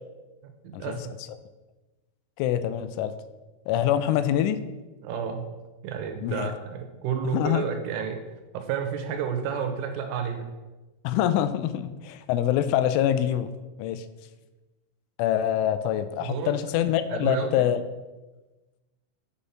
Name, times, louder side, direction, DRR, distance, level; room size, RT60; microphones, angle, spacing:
voice 1, 0.4-1.1 5.0-5.5 5.8-8.2 8.5-10.5 16.2-16.5 17.1-17.7, right 7 dB, 80° right, 5 dB, 3.3 m, -31 dB
voice 2, 2.4-3.1 3.7-4.6 6.2-6.5 7.3-7.6 11.0-13.5 13.8-14.1 15.2-17.8, left 11 dB, 85° left, 11 dB, 2.9 m, -25 dB
8.1 x 5.5 x 5.7 m, 1.2 s
omnidirectional pair, 5.8 m